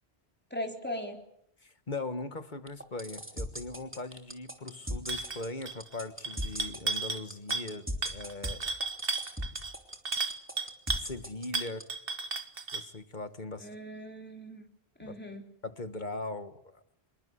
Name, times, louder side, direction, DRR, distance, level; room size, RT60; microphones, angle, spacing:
voice 1, 0.5-1.2 13.6-14.7 15.0-15.4, equal, 10° left, 2 dB, 4.0 m, -39 dB
voice 2, 1.6-8.6 10.9-11.8 12.7-13.7 15.0-15.1 15.6-16.8, left 2 dB, 45° left, 11 dB, 1.6 m, -40 dB
sound 1, 2.7-11.8, equal, 10° right, 3.2 m, -37 dB
sound 2, 5.1-5.4 5.7-6.0 6.2-7.2 7.5-7.8 8.0-11.1 11.5-12.9, right 3 dB, 60° right, 1.7 m, -34 dB
26.5 x 22.5 x 8.2 m, 0.73 s
omnidirectional pair, 1.1 m